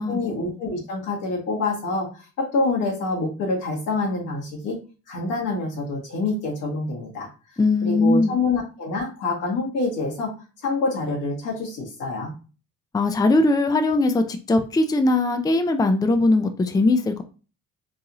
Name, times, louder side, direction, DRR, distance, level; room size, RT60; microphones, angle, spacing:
voice 1, 0.0-4.8 5.1-7.3 7.8-10.3 10.6-12.3, left 3 dB, 85° left, -2 dB, 1.7 m, -26 dB
voice 2, 7.6-8.4 12.9-17.2, left 2 dB, 15° left, 7 dB, 0.4 m, -20 dB
3.9 x 2.6 x 2.9 m, 0.34 s
cardioid pair, 90°, 30 cm